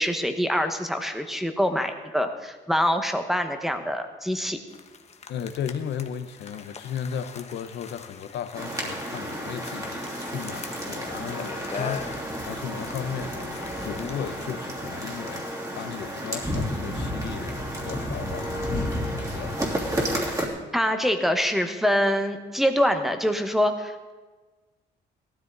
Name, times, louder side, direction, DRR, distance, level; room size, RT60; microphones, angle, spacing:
voice 1, 0.0-4.6 20.7-24.1, equal, ahead, 7 dB, 1.2 m, -25 dB
sound 1, 4.7-14.6, left 5 dB, 35° left, 1.1 m, -42 dB
voice 2, 5.3-20.0, left 8 dB, 70° left, 11 dB, 1.0 m, -36 dB
sound 2, 8.5-20.5, equal, 15° right, 2.9 m, -31 dB
17.5 x 13.0 x 4.0 m, 1.3 s
cardioid pair, 120°, 19 cm